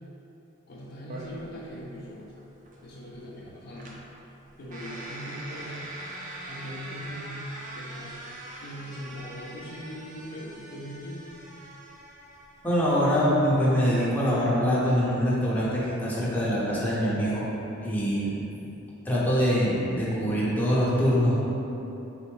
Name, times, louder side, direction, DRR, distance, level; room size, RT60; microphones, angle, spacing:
voice 1, 0.7-2.3 2.8-3.9 4.6-5.9 6.5-7.4 7.7-8.2 8.6-11.2, equal, 50° left, -4 dB, 0.5 m, -40 dB
sound 1, 1.1-17.3, right 1 dB, 40° right, 0.5 m, -44 dB
voice 2, 12.6-17.5 17.8-18.4 19.0-21.4, equal, 10° left, -8 dB, 0.7 m, -24 dB
3.7 x 3.3 x 3.1 m, 2.9 s
head